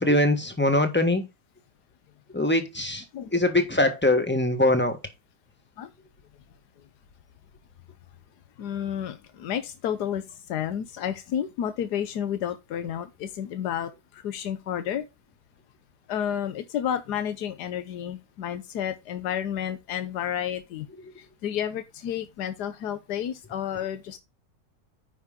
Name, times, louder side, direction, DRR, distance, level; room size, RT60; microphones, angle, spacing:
voice 1, 0.0-1.3 2.3-3.0 3.3-5.0, left 1 dB, 5° left, 1.2 m, -22 dB
voice 2, 8.6-10.2 10.5-13.9 14.2-15.0 16.1-20.9 21.4-24.2, left 9 dB, 90° left, 1.4 m, -31 dB
9.3 x 5.6 x 3.7 m
omnidirectional pair, 1.7 m